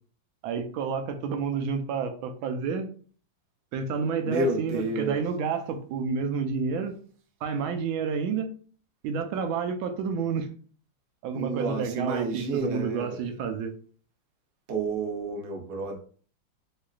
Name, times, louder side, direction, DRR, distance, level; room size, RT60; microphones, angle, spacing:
voice 1, 0.4-2.9 3.7-7.0 7.4-8.5 9.0-10.5 11.2-13.7, right 5 dB, 90° right, 7 dB, 1.4 m, -30 dB
voice 2, 4.2-5.2 11.3-13.2 14.7-16.0, right 2 dB, 65° right, 1 dB, 0.5 m, -30 dB
4.6 x 2.5 x 2.3 m, 0.44 s
omnidirectional pair, 2.1 m